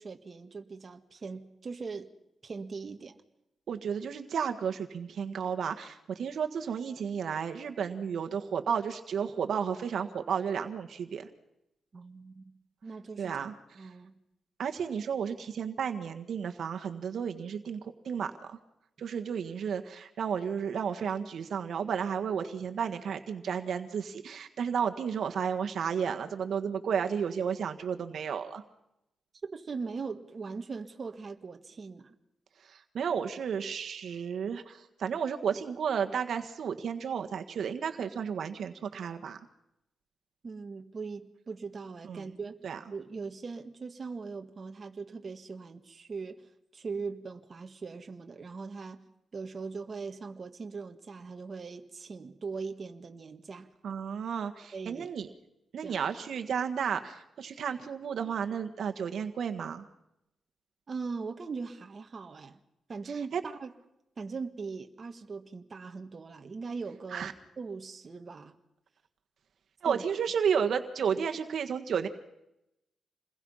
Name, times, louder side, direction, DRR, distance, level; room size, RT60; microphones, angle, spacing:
voice 1, 0.0-2.1 2.4-3.2 11.9-12.5 12.8-13.3 13.8-14.1 29.4-32.2 40.4-42.6 42.9-46.5 46.7-49.0 49.3-53.7 54.7-55.1 55.8-56.0 60.9-62.6 62.9-63.7 64.2-68.6 69.9-70.0, right 4 dB, 40° right, 5 dB, 1.7 m, -40 dB
voice 2, 3.7-11.3 13.2-13.9 14.6-18.6 19.0-28.6 32.7-39.4 42.1-42.3 42.6-42.8 53.8-55.3 55.7-59.8 63.3-63.4 67.1-67.3 69.8-72.1, right 7 dB, 70° right, 6 dB, 1.6 m, -32 dB
28.0 x 21.5 x 5.7 m, 0.86 s
wide cardioid pair, 125°, 0 cm